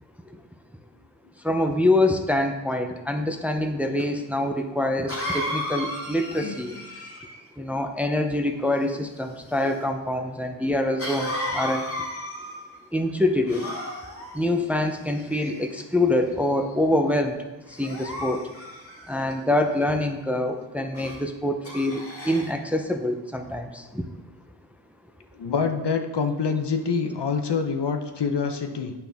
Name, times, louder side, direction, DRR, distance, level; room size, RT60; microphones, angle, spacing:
voice 1, 1.4-6.7 7.6-11.8 12.9-13.7 14.3-17.4 17.8-18.4 19.1-24.0, left 1 dB, 5° right, 5 dB, 0.6 m, -25 dB
Cough, 4.0-4.1 5.1-7.5 11.0-12.8 13.5-14.3 15.1-15.8 16.4-16.7 17.7-19.3 20.9-21.2 21.6-22.5, left 1 dB, 30° left, 1.8 m, -34 dB
voice 2, 25.3-28.9, left 5 dB, 65° left, 6 dB, 0.9 m, -26 dB
9.2 x 5.8 x 3.5 m, 1.1 s
wide cardioid pair, 60°, 45 cm